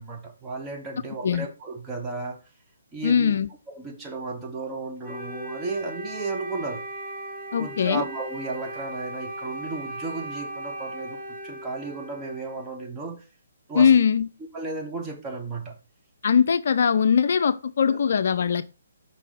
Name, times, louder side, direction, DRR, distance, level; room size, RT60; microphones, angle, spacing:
voice 1, 0.0-2.4 2.9-3.3 3.7-6.8 7.6-13.2 13.7-13.9 14.5-15.8 17.8-18.0, right 3 dB, 15° right, 1.4 m, -34 dB
voice 2, 3.0-3.5 7.5-8.0 13.7-14.3 16.2-18.7, left 7 dB, 60° left, 0.4 m, -21 dB
Wind instrument woodwind instrument, 5.0-12.7, right 1 dB, 30° right, 2.5 m, -37 dB
5.6 x 3.7 x 5.0 m
figure-of-eight pair, 140°, 0 cm